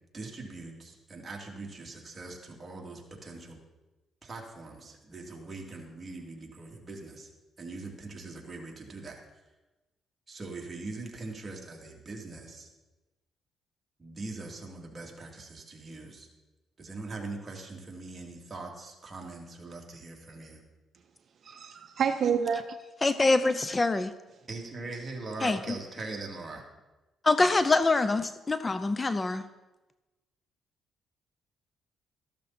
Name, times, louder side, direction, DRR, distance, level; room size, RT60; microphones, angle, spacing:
voice 1, 0.1-3.6 4.2-7.3 7.6-9.2 10.3-12.7 14.0-16.3 16.8-20.6 24.5-26.6, right 3 dB, 25° right, 2.9 m, -41 dB
voice 2, 21.4-22.8, right 7 dB, 55° right, 0.6 m, -28 dB
voice 3, 23.0-24.1 25.4-25.8 27.2-29.4, left 3 dB, 25° left, 0.6 m, -25 dB
13.5 x 12.0 x 4.3 m
cardioid pair, 90°, 0 cm